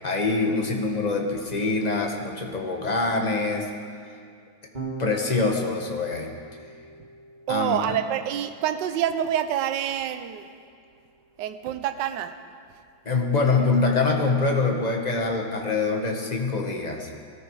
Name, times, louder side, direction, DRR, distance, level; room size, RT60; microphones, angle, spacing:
voice 1, 0.0-3.7 4.8-6.3 7.5-8.0 13.0-17.1, left 3 dB, 25° left, 1 dB, 1.3 m, -25 dB
Electric guitar / Bass guitar, 4.7-11.1, right 3 dB, 20° right, 2.2 m, -43 dB
voice 2, 7.5-10.4 11.4-12.3, right 10 dB, 70° right, 9 dB, 1.3 m, -27 dB
19.0 x 13.5 x 4.8 m, 2.2 s
omnidirectional pair, 2.3 m